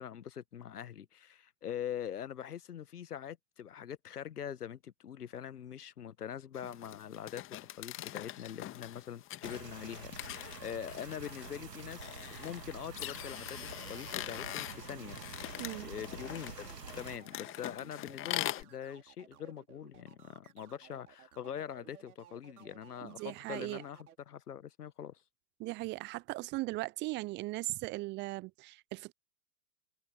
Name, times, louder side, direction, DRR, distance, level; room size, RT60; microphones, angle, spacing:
voice 1, 0.0-13.6 13.9-15.2 15.8-25.2, left 9 dB, 70° left, 1.3 m, -43 dB
sound 1, 6.5-18.6, left 14 dB, 25° left, 1.9 m, -43 dB
sound 2, 9.4-17.2, right 5 dB, 85° right, 2.0 m, -48 dB
sound 3, 13.6-24.2, right 10 dB, 65° right, 4.2 m, -58 dB
voice 2, 23.0-23.8 25.6-29.1, right 21 dB, 25° right, 0.7 m, -38 dB
figure-of-eight pair, 100°, 48 cm